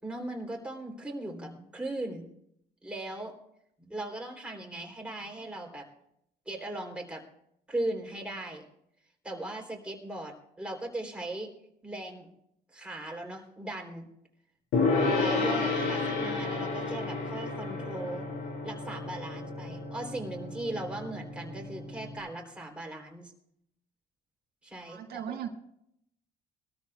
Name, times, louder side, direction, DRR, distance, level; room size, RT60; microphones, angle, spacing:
voice 1, 0.0-2.3 2.8-3.3 3.8-5.9 6.4-7.2 7.7-8.6 9.2-11.5 11.8-12.3 12.7-14.1 15.2-18.3 18.6-23.3 24.6-25.4, right 1 dB, 5° right, 0 dB, 3.4 m, -38 dB
Gong, 14.7-22.2, left 3 dB, 85° left, 5.5 m, -31 dB
voice 2, 24.9-25.5, right 9 dB, 65° right, 2 dB, 1.7 m, -37 dB
22.0 x 13.5 x 2.4 m, 0.74 s
cardioid pair, 110°, 17 cm